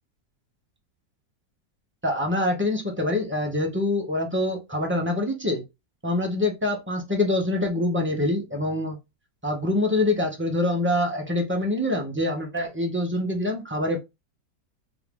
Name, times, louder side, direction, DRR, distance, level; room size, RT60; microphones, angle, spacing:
voice 1, 2.0-5.6 6.0-9.0 9.4-14.0, left 1 dB, 20° right, 0.3 m, -25 dB
3.9 x 2.5 x 3.5 m
omnidirectional pair, 1.7 m